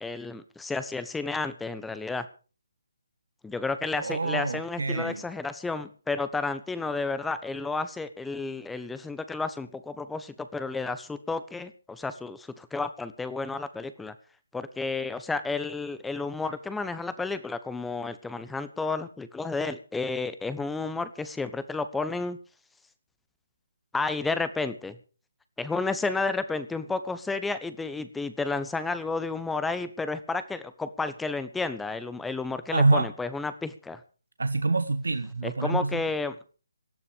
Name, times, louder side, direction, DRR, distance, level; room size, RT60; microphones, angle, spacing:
voice 1, 0.0-2.3 3.4-14.1 14.5-22.4 23.9-24.9 25.6-34.0 35.4-36.3, left 3 dB, 5° left, 12 dB, 1.1 m, -31 dB
voice 2, 4.0-5.2 32.7-33.1 34.4-36.0, right 3 dB, 75° right, 10 dB, 1.3 m, -26 dB
18.0 x 12.5 x 5.2 m, 0.38 s
figure-of-eight pair, 145°, 0 cm